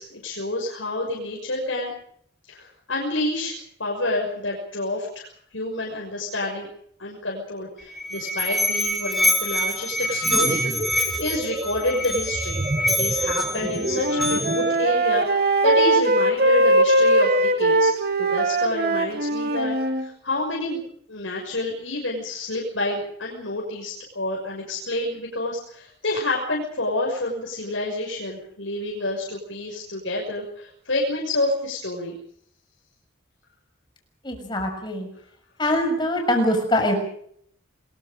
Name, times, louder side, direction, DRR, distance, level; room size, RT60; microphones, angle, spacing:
voice 1, 0.0-1.9 2.5-6.7 7.0-20.8 21.1-32.2, left 2 dB, 75° left, -2 dB, 6.2 m, -28 dB
Musical instrument, 7.8-14.8, equal, ahead, 4.1 m, -26 dB
sound 1, 10.0-14.8, right 1 dB, 30° right, 0.9 m, -31 dB
Wind instrument woodwind instrument, 13.6-20.1, right 1 dB, 50° right, 2.3 m, -20 dB
voice 2, 34.2-35.1 35.6-36.9, left 1 dB, 25° left, 4 dB, 6.5 m, -23 dB
28.5 x 22.0 x 5.2 m, 0.66 s
head